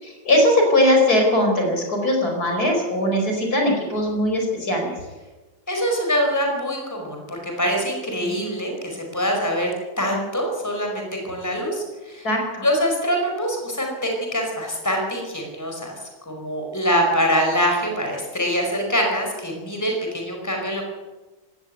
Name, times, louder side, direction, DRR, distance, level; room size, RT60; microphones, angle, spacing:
voice 1, 0.0-4.9 12.2-12.7, left 1 dB, 55° left, 2 dB, 5.4 m, -20 dB
voice 2, 5.7-12.3 12.6-16.0 16.3-20.8, equal, 10° left, 2 dB, 5.0 m, -24 dB
18.5 x 15.0 x 9.3 m, 1.2 s
omnidirectional pair, 1.9 m